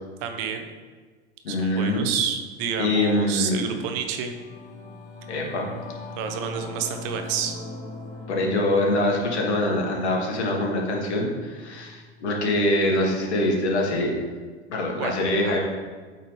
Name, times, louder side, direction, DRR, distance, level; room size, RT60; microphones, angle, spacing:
voice 1, 0.2-0.6 1.5-4.4 5.3-5.4 6.2-7.5 15.0-15.1, right 8 dB, 55° right, 6 dB, 0.8 m, -29 dB
voice 2, 1.4-2.1 2.8-3.7 5.3-5.7 8.3-14.1 14.7-15.6, left 1 dB, 75° left, -1 dB, 1.6 m, -24 dB
Singing / Musical instrument, 3.6-13.1, left 2 dB, 35° left, 1.2 m, -41 dB
8.3 x 3.9 x 3.2 m, 1.5 s
hypercardioid pair, 90°, 34 cm